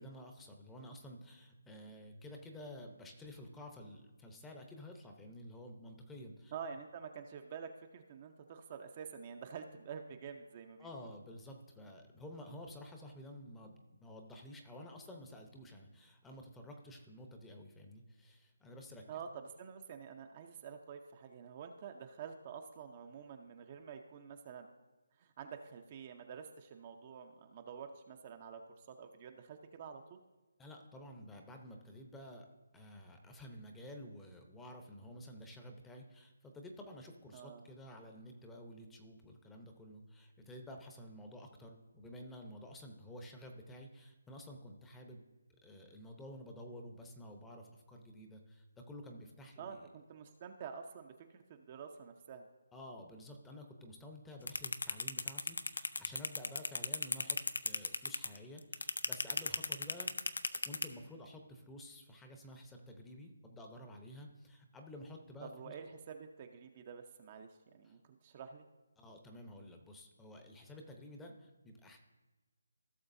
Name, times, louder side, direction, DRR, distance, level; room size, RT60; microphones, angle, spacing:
voice 1, 0.0-6.5 10.8-19.0 30.6-32.5 32.7-45.2 45.6-49.9 52.7-60.1 60.5-65.7 67.8-68.0 69.0-72.0, left 1 dB, 5° left, 3 dB, 0.8 m, -51 dB
voice 2, 6.5-11.1 19.1-24.7 25.2-30.2 37.3-37.6 49.6-52.5 65.4-67.5 67.7-68.7, right 6 dB, 30° right, 5 dB, 0.6 m, -48 dB
sound 1, 54.5-60.8, left 3 dB, 80° left, 0.6 m, -35 dB
16.0 x 6.7 x 2.7 m, 1.2 s
figure-of-eight pair, 160°, 0 cm